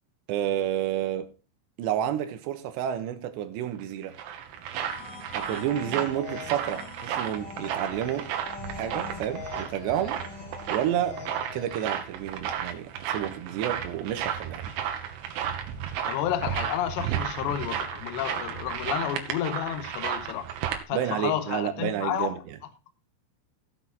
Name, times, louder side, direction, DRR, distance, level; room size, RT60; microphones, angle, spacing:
voice 1, 0.3-1.3 1.8-4.2 5.3-8.3 8.7-10.2 10.7-11.2 11.5-14.7 20.9-22.6, right 11 dB, 75° right, 3.2 m, -30 dB
sound 1, 3.8-20.8, right 9 dB, 90° right, 3.9 m, -33 dB
sound 2, 4.7-12.0, left 6 dB, 55° left, 3.9 m, -43 dB
voice 2, 16.0-20.5 20.9-22.3, left 11 dB, 75° left, 3.1 m, -30 dB
17.0 x 6.2 x 3.9 m
omnidirectional pair, 5.5 m